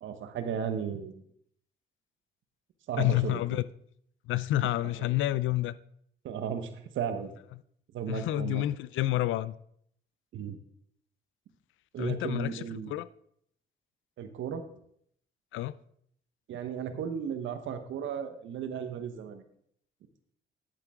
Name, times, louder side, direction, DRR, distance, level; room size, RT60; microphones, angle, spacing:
voice 1, 0.0-1.2 2.9-3.6 5.0-5.1 6.2-7.3 7.9-8.6 10.3-10.6 11.9-12.9 14.2-14.6 16.5-19.4, right 7 dB, 75° right, 1.1 m, -35 dB
voice 2, 3.0-3.6 4.3-5.8 8.1-9.5 12.0-13.1 15.5-15.7, left 15 dB, 80° left, 0.5 m, -29 dB
10.5 x 8.4 x 3.7 m
cardioid pair, 90°, 20 cm